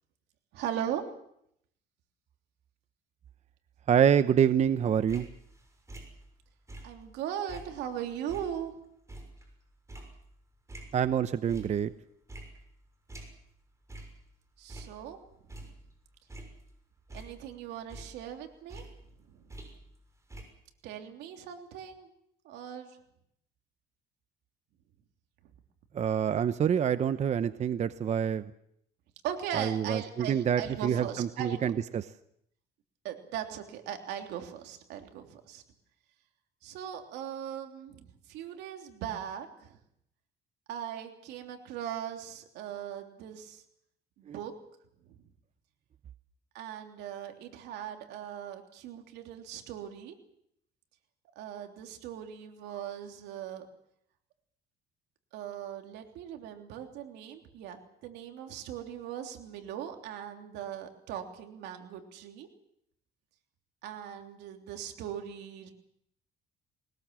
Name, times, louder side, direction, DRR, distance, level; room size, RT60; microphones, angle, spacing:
voice 1, 0.5-1.0 6.8-8.7 14.6-15.2 15.5-15.7 17.1-18.8 19.3-19.5 20.8-22.1 22.4-22.9 29.2-31.7 33.0-35.6 36.6-39.8 40.7-43.6 44.2-44.5 46.5-50.2 51.3-53.7 55.3-62.5 63.8-65.7, right 9 dB, 90° right, 4 dB, 3.2 m, -39 dB
voice 2, 3.9-5.3 10.9-11.9 25.9-28.5 29.5-32.0 44.3-44.4, right 8 dB, 40° right, 12 dB, 0.8 m, -26 dB
sound 1, 4.8-7.2 7.5-11.1 11.5-12.0 12.3-13.6 13.9-14.2 14.6-15.9 16.3-17.6 17.9-20.0 20.3-20.4, right 1 dB, 15° right, 6.5 m, -47 dB
22.0 x 20.0 x 7.6 m, 0.73 s
cardioid pair, 110°, 17 cm